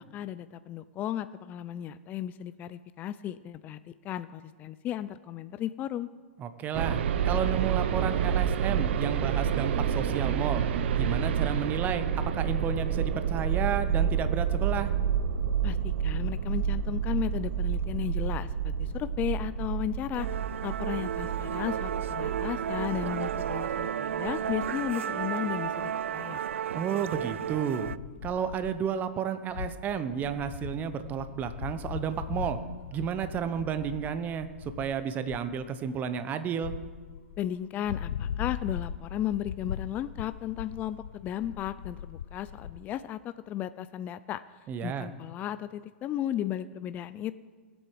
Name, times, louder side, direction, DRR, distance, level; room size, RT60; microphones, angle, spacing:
voice 1, 0.1-6.1 15.6-20.3 20.6-26.4 37.4-44.4 44.8-47.4, left 11 dB, 25° left, 13 dB, 0.4 m, -35 dB
voice 2, 6.4-10.6 10.9-12.0 12.3-14.9 26.7-27.9 28.2-32.6 32.9-34.5 34.8-36.7 44.7-45.1, right 8 dB, 25° right, 10 dB, 1.0 m, -32 dB
sound 1, 6.7-23.8, right 8 dB, 60° right, 0.8 m, -29 dB
Musical instrument, 20.1-28.0, right 9 dB, 85° right, 0.3 m, -33 dB
sound 2, 23.5-23.7 24.1-26.2 26.5-26.6 27.1-28.9 29.5-35.0 35.3-35.6 36.6-37.5 37.8-42.8, left 8 dB, 70° left, 0.6 m, -40 dB
20.0 x 8.0 x 4.7 m, 1.4 s
hypercardioid pair, 125°, 7 cm